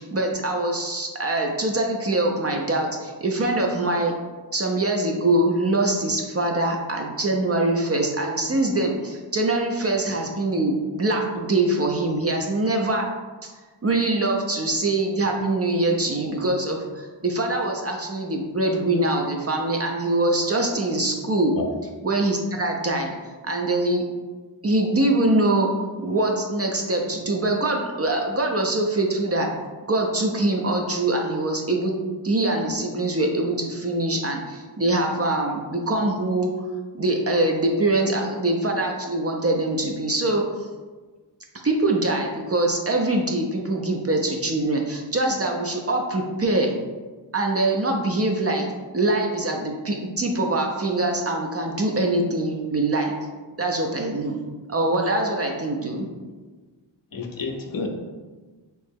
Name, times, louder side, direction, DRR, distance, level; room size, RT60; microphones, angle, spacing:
voice 1, 0.0-4.1 4.5-13.1 13.8-21.5 22.0-23.1 23.4-24.0 24.6-25.7 26.0-29.5 29.9-31.9 32.2-36.5 36.9-40.4 41.6-46.7 47.3-48.7 48.9-53.1 53.6-54.4 54.7-56.1, right 2 dB, 35° right, 1 dB, 0.4 m, -23 dB
voice 2, 57.1-57.9, left 4 dB, 50° left, 2 dB, 0.5 m, -30 dB
3.1 x 2.7 x 3.5 m, 1.3 s
wide cardioid pair, 70°, 46 cm